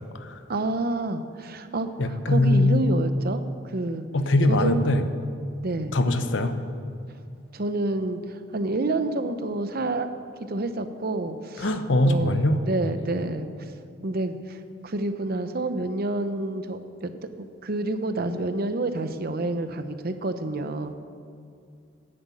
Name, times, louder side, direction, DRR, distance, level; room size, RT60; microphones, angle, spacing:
voice 1, 0.5-3.4 3.7-4.1 4.5-4.7 5.6-5.9 7.5-10.1 10.5-11.7 12.0-13.7 14.0-17.1 17.4-20.9, right 2 dB, 50° right, 10 dB, 0.8 m, -28 dB
voice 2, 2.0-3.0 4.1-5.0 5.9-6.5 11.6-12.6, left 1 dB, 70° left, 9 dB, 0.9 m, -22 dB
10.0 x 8.1 x 8.4 m, 2.4 s
head